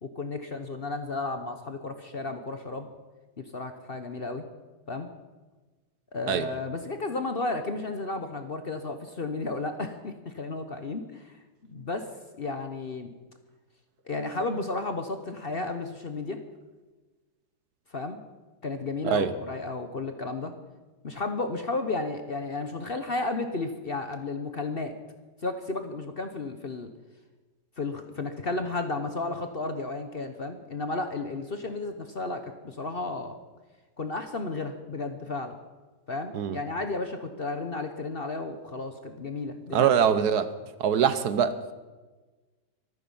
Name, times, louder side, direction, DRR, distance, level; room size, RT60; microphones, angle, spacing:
voice 1, 0.0-2.9 3.4-4.5 4.9-5.1 6.1-11.3 11.7-12.1 12.4-13.1 14.1-16.4 17.9-18.2 18.6-20.5 21.0-24.9 25.4-26.9 27.8-33.3 34.0-35.6 36.1-39.9, left 3 dB, 40° left, 7 dB, 1.0 m, -33 dB
voice 2, 39.7-40.5 40.8-41.7, right 8 dB, 70° right, 12 dB, 1.3 m, -23 dB
24.0 x 9.6 x 5.6 m, 1.3 s
omnidirectional pair, 1.9 m